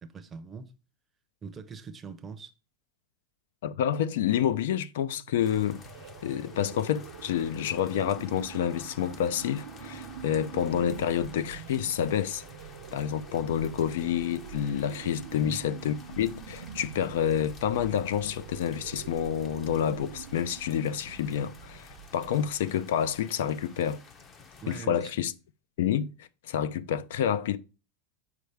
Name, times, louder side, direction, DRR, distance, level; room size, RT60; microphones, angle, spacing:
voice 1, 0.0-0.7 1.4-2.5 15.4-15.7 24.6-25.1, right 5 dB, 15° right, 0.6 m, -42 dB
voice 2, 3.6-5.8 6.2-12.4 12.9-24.0 24.7-25.3 25.8-27.6, left 9 dB, 70° left, 0.5 m, -28 dB
sound 1, 5.1-22.7, right 10 dB, 80° right, 0.5 m, -46 dB
sound 2, 5.4-24.8, left 4 dB, 25° left, 0.7 m, -50 dB
6.6 x 4.7 x 3.4 m
supercardioid pair, 160°, 0 cm